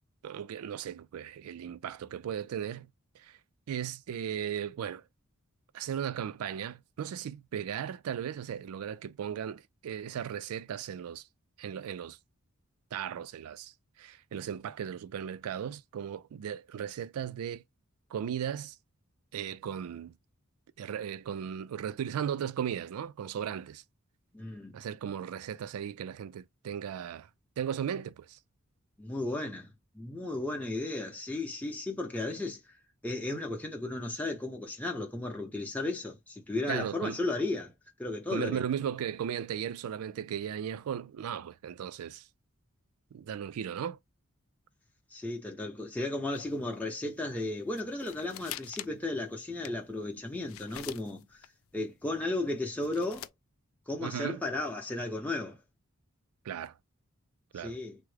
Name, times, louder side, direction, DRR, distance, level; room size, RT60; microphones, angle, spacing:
voice 1, 0.2-2.9 3.2-3.4 3.7-5.0 5.7-11.2 11.6-12.2 12.9-13.7 14.0-17.6 18.1-18.8 19.3-20.1 20.8-23.8 24.7-27.3 27.6-28.4 36.7-37.2 38.3-42.3 43.1-44.0 54.0-54.4 56.5-56.7 57.5-57.8, right 8 dB, 85° right, 0.3 m, -36 dB
voice 2, 24.3-24.8 29.0-32.6 33.0-37.7 38.0-38.6 45.1-51.4 51.7-53.3 53.9-55.6 57.6-58.0, left 2 dB, 5° left, 0.6 m, -34 dB
sound 1, 46.3-46.8 47.0-47.1 47.4-47.5 47.7-49.1 49.5-51.5 52.1-53.3, left 14 dB, 65° left, 0.3 m, -45 dB
3.5 x 2.0 x 3.2 m
head